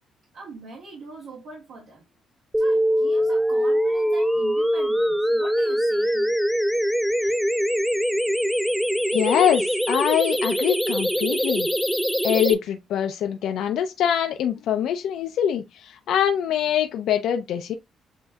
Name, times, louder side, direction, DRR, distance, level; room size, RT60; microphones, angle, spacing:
voice 1, 0.3-2.0 2.6-6.3, right 3 dB, 80° right, 1.7 m, -42 dB
sound 1, 2.5-12.5, equal, ahead, 0.4 m, -23 dB
voice 2, 9.1-11.7 12.2-17.7, left 9 dB, 80° left, 0.4 m, -24 dB
7.3 x 2.6 x 2.3 m
cardioid pair, 90°, 0 cm